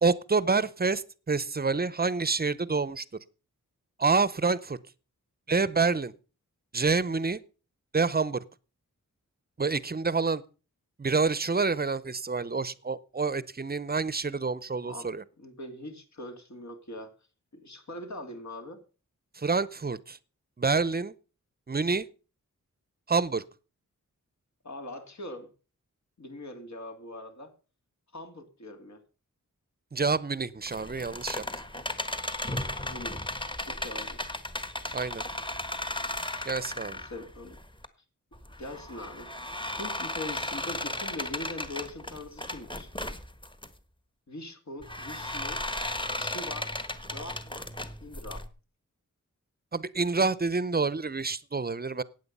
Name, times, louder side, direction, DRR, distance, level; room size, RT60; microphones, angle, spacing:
voice 1, 0.0-3.0 4.0-4.8 5.5-6.1 6.7-7.4 7.9-8.4 9.6-10.4 11.0-15.2 19.3-20.2 20.6-21.1 21.7-22.1 23.1-23.4 29.9-31.4 34.9-35.2 36.4-37.0 49.7-52.0, right 4 dB, 30° right, 19 dB, 0.7 m, -27 dB
voice 2, 15.4-17.1 17.5-18.8 24.6-25.5 26.2-27.5 28.1-29.0 32.8-33.2 33.6-34.2 36.9-37.6 38.6-42.9 44.3-45.6 46.2-46.7 47.1-47.7 48.0-48.5, left 1 dB, 60° left, 6 dB, 2.7 m, -42 dB
sound 1, 30.6-37.9 38.3-43.7 44.8-48.5, left 1 dB, 15° left, 1.4 m, -35 dB
15.5 x 9.3 x 5.4 m, 0.35 s
wide cardioid pair, 125°, 31 cm